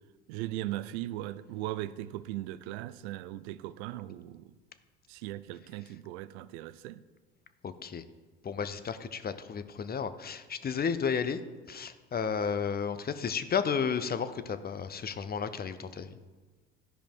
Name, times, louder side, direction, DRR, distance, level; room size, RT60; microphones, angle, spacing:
voice 1, 0.3-4.5 5.1-7.0, right 15 dB, 80° right, 0.5 m, -38 dB
voice 2, 7.6-8.1 8.4-11.4 11.7-16.1, left 6 dB, 30° left, 0.7 m, -32 dB
11.5 x 5.1 x 4.5 m
hypercardioid pair, 65°, 33 cm